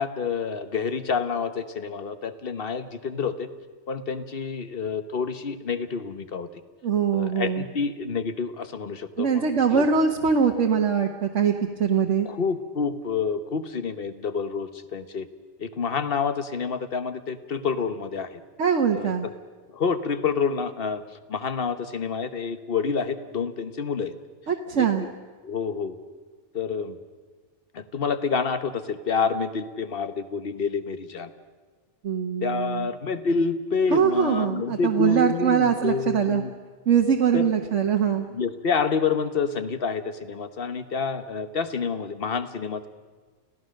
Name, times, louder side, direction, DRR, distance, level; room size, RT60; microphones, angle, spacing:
voice 1, 0.0-3.5 3.9-6.5 7.1-9.8 12.2-15.3 15.6-18.4 18.9-19.3 19.7-21.0 21.3-24.1 24.8-25.1 25.4-26.0 26.5-27.0 27.7-31.3 32.4-36.5 37.3-37.5 38.3-42.9, left 5 dB, 50° left, 11 dB, 1.3 m, -28 dB
voice 2, 6.8-7.6 9.2-11.5 11.8-12.3 18.6-19.3 24.5-25.1 32.0-32.9 33.9-36.4 36.9-38.3, right 7 dB, 75° right, 2 dB, 1.4 m, -22 dB
29.5 x 16.0 x 6.5 m, 1.4 s
omnidirectional pair, 1.2 m